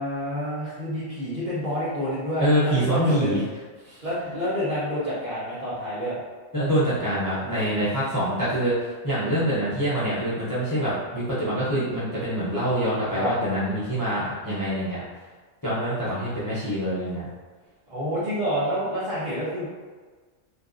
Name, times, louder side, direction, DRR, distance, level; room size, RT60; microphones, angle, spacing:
voice 1, 0.0-3.4 4.0-6.2 9.5-9.6 13.1-13.3 17.9-19.7, equal, 45° right, -9 dB, 0.7 m, -28 dB
voice 2, 2.4-3.4 3.8-4.0 6.5-8.7 9.0-15.0 15.6-17.3, equal, 25° left, -11 dB, 0.4 m, -25 dB
2.9 x 2.5 x 2.4 m, 1.4 s
omnidirectional pair, 1.4 m